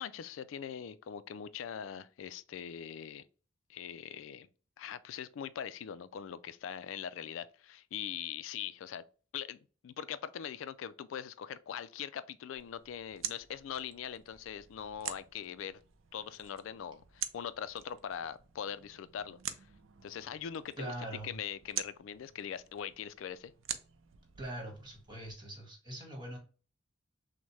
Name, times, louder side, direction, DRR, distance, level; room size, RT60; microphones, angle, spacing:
voice 1, 0.0-3.2 3.7-4.5 4.8-9.0 9.3-15.8 16.1-19.7 20.0-20.9 21.2-23.5, left 8 dB, 80° left, 0.3 m, -42 dB
sound 1, 12.6-25.3, right 9 dB, 85° right, 0.5 m, -46 dB
voice 2, 20.8-21.4 24.4-26.4, right 1 dB, 25° right, 1.6 m, -42 dB
6.1 x 2.2 x 3.2 m
head